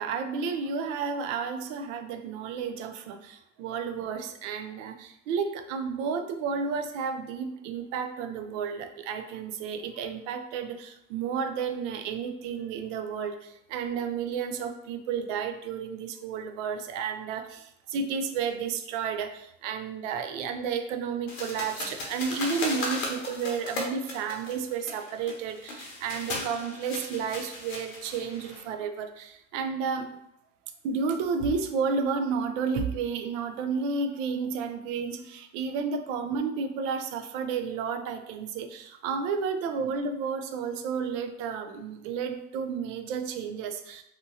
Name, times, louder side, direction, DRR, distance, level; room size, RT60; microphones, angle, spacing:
voice 1, 0.0-30.1 30.8-44.0, right 5 dB, 70° right, 8 dB, 0.5 m, -32 dB
sound 1, 21.3-28.6, left 2 dB, 85° left, 0.8 m, -36 dB
2.8 x 2.6 x 2.5 m, 0.77 s
hypercardioid pair, 70°, 38 cm